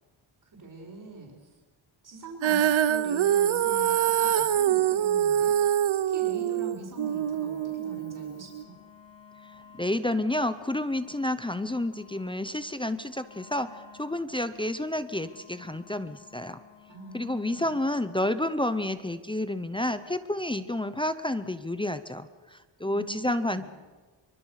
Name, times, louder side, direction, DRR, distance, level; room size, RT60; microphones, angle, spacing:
voice 1, 0.4-1.5 2.0-8.7 16.9-17.7 22.8-23.6, right 2 dB, 45° right, -1 dB, 4.9 m, -43 dB
Female singing, 2.4-8.6, right 10 dB, 80° right, 0.9 m, -25 dB
Wind instrument woodwind instrument, 6.9-17.9, left 8 dB, 65° left, 3.1 m, -55 dB
voice 2, 9.8-16.6 17.1-23.7, left 1 dB, 10° left, 10 dB, 0.6 m, -30 dB
24.5 x 24.0 x 6.5 m, 1.3 s
wide cardioid pair, 165°, 47 cm